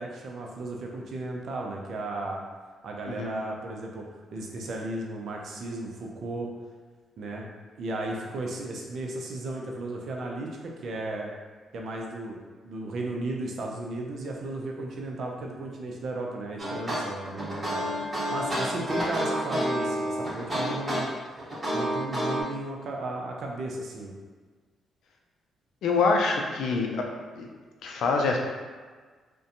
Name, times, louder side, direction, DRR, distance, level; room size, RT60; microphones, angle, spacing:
voice 1, 0.0-2.4 2.8-4.1 4.3-6.5 7.2-7.5 7.8-11.3 11.7-17.8 18.3-21.1 21.7-24.1, right 2 dB, 65° right, 0 dB, 0.5 m, -35 dB
voice 2, 3.1-3.4 25.8-27.1 27.3-27.5 27.8-28.4, left 4 dB, 75° left, 1 dB, 0.4 m, -25 dB
sound 1, 16.6-22.4, equal, 25° right, 1.1 m, -29 dB
2.6 x 2.2 x 2.5 m, 1.4 s
supercardioid pair, 65°, 0 cm